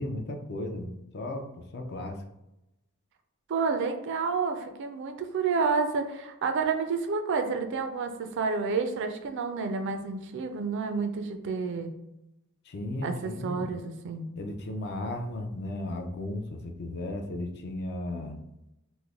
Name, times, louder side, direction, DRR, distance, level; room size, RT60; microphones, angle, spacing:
voice 1, 0.0-2.2 12.7-13.7 14.4-18.4, left 1 dB, 50° left, 4 dB, 0.4 m, -35 dB
voice 2, 3.5-11.9 13.0-14.3, right 4 dB, 55° right, 7 dB, 0.4 m, -30 dB
3.1 x 2.1 x 3.5 m, 0.90 s
head